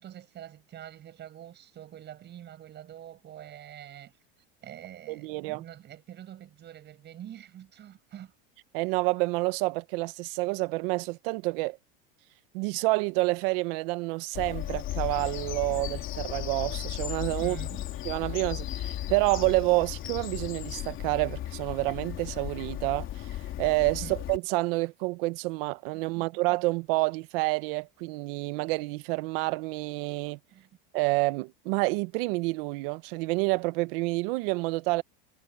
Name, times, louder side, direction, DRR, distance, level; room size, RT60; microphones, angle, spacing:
voice 1, 0.0-4.1 4.6-8.3 17.4-17.9 24.0-24.2 25.9-26.2 30.5-30.7, right 11 dB, 35° right, 6.4 m, -46 dB
voice 2, 5.1-5.6 8.7-11.8 12.5-17.6 18.0-23.3 23.6-30.4 30.9-35.0, right 24 dB, 70° right, 1.1 m, -28 dB
Bird vocalization bird call bird song, 14.3-24.4, left 13 dB, 45° left, 3.2 m, -35 dB
supercardioid pair, 135°, 29 cm